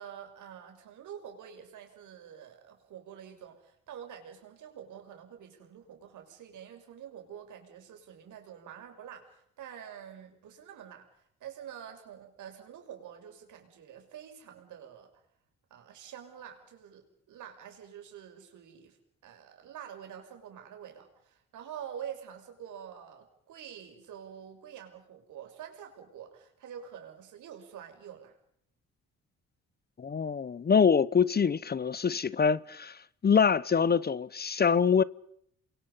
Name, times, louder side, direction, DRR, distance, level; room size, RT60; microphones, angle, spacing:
voice 1, 0.0-15.2 15.7-19.0 19.2-28.4, right 9 dB, 80° right, 6.4 m, -47 dB
voice 2, 30.0-35.0, left 6 dB, 30° left, 0.9 m, -25 dB
29.5 x 23.0 x 5.7 m
cardioid pair, 90°, 30 cm